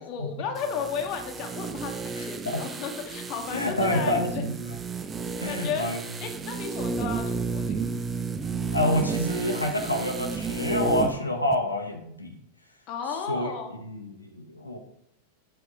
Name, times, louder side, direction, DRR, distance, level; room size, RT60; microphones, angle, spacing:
voice 1, 0.0-4.4 5.4-5.9 6.2-7.8 12.9-13.7, left 6 dB, 40° left, 4 dB, 1.1 m, -34 dB
sound 1, 0.6-11.2 11.5-11.6, right 4 dB, 20° right, 0.5 m, -32 dB
voice 2, 2.2-2.6 3.5-4.7 5.4-6.0 8.7-12.3 13.3-13.5 13.8-14.8, left 1 dB, 85° left, 2 dB, 0.9 m, -28 dB
7.7 x 3.5 x 4.8 m, 0.74 s
figure-of-eight pair, 90°, 0 cm